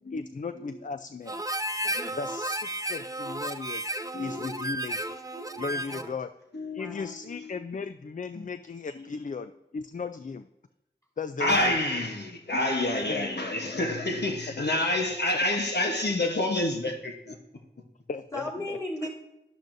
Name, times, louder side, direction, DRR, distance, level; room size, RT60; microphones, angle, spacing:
voice 1, 0.1-1.4 2.1-3.8 4.2-5.2 5.6-6.3 6.7-10.5 11.2-11.7 13.1-13.2 16.2-16.3 18.1-18.8, left 4 dB, 50° left, 0.4 m, -36 dB
Harmonica, 1.3-6.2, right 1 dB, 20° right, 0.5 m, -33 dB
voice 2, 1.8-2.2 5.7-6.1 6.8-7.1 18.3-19.1, left 1 dB, 20° left, 2.9 m, -36 dB
voice 3, 4.1-4.7 5.4-5.6 6.5-7.5 8.3-8.4 8.9-9.2 11.4-17.4, left 1 dB, 70° left, 1.1 m, -29 dB
12.0 x 10.5 x 2.6 m
wide cardioid pair, 55°, 18 cm